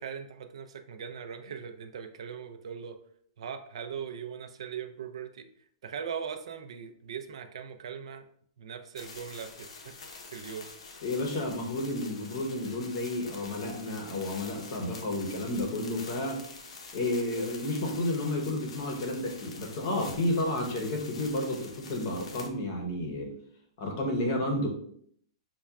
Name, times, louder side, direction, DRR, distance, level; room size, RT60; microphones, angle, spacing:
voice 1, 0.0-3.0 3.4-5.5 5.8-8.3 8.6-10.0 10.3-10.7, right 7 dB, 70° right, 8 dB, 0.4 m, -40 dB
sound 1, 9.0-22.5, left 4 dB, 85° left, 0.7 m, -47 dB
voice 2, 11.0-16.4 16.9-23.3 23.8-24.7, left 1 dB, 35° left, 2 dB, 0.7 m, -31 dB
5.5 x 2.2 x 2.3 m, 0.62 s
hypercardioid pair, 180°, 3 cm